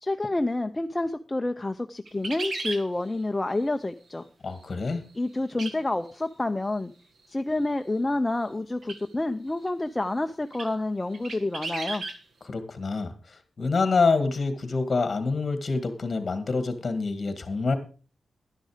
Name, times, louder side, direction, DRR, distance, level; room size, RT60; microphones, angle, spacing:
voice 1, 0.0-4.2 5.1-6.9 7.3-12.0, left 2 dB, 15° left, 6 dB, 0.5 m, -28 dB
sound 1, 2.1-2.8 5.6-5.7 6.1-6.2 8.8-9.0 9.7-9.8 10.5-10.7 11.1-12.2, right 3 dB, 60° right, 1.6 m, -34 dB
voice 2, 4.4-5.0 12.4-17.7, left 4 dB, 35° left, 9 dB, 1.8 m, -26 dB
11.5 x 10.0 x 4.9 m, 0.36 s
wide cardioid pair, 175°, 0 cm